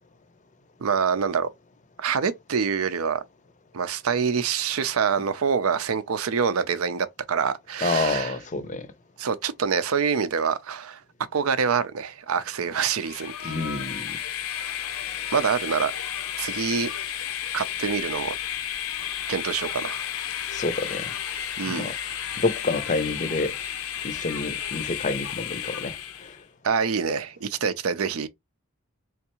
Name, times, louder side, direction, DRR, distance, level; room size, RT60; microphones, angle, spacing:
voice 1, 0.8-1.5 2.0-3.2 3.7-8.3 9.2-11.0 11.3-13.6 15.3-15.9 16.4-16.9 17.5-18.3 19.3-20.0 21.6-21.9 26.6-28.3, right 6 dB, 85° right, 0.5 m, -26 dB
voice 2, 7.8-8.9 13.4-14.2 20.5-21.2 21.7-21.9 22.4-23.6 24.0-26.4, left 3 dB, 35° left, 0.5 m, -28 dB
Train, 12.9-26.4, left 9 dB, 80° left, 0.6 m, -32 dB
3.5 x 3.2 x 3.0 m
head